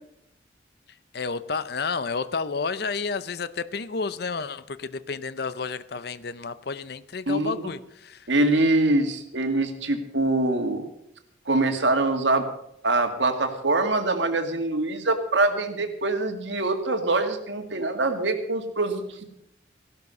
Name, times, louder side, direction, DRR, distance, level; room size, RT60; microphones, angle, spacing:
voice 1, 1.1-8.3, left 4 dB, 60° left, 0.6 m, -31 dB
voice 2, 7.3-7.6 8.3-10.8 11.5-12.5 12.8-19.2, right 2 dB, 80° right, 2.2 m, -24 dB
15.5 x 12.0 x 5.4 m
head